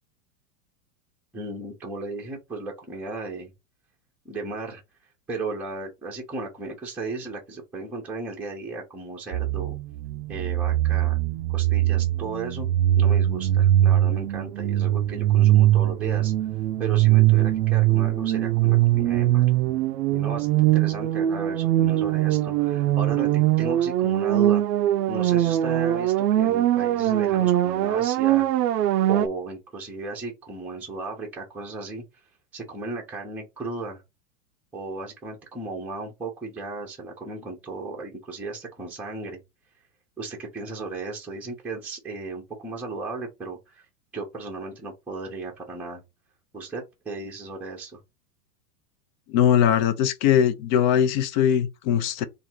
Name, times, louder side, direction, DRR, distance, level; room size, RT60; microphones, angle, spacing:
voice 1, 1.3-3.5 4.2-4.8 5.3-9.8 10.3-11.2 11.5-12.7 12.9-16.3 16.8-19.5 20.1-24.6 25.1-28.5 29.1-32.0 32.5-34.0 34.7-39.4 40.2-43.8 44.1-46.0 46.5-48.0, right 3 dB, 5° right, 0.7 m, -35 dB
sound 1, 9.3-29.3, right 13 dB, 90° right, 0.6 m, -21 dB
voice 2, 49.3-52.2, left 9 dB, 30° left, 0.5 m, -21 dB
3.4 x 2.6 x 4.4 m
supercardioid pair, 145°, 47 cm